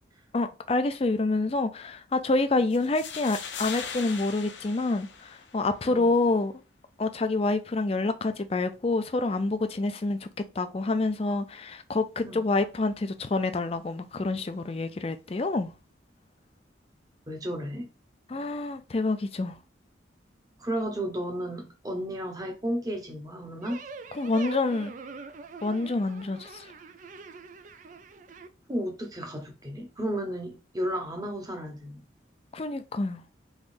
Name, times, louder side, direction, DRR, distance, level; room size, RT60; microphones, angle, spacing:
voice 1, 0.3-6.5 7.0-10.3 10.6-15.7 18.3-19.6 24.1-24.9 25.6-26.7 32.5-33.2, left 3 dB, 30° left, 0.4 m, -27 dB
sound 1, 2.7-5.7, left 6 dB, 70° left, 0.7 m, -39 dB
voice 2, 17.3-17.9 20.6-23.8 28.7-32.0, equal, 20° right, 1.0 m, -33 dB
sound 2, 23.6-28.5, right 4 dB, 40° right, 0.4 m, -44 dB
3.6 x 3.1 x 2.5 m
head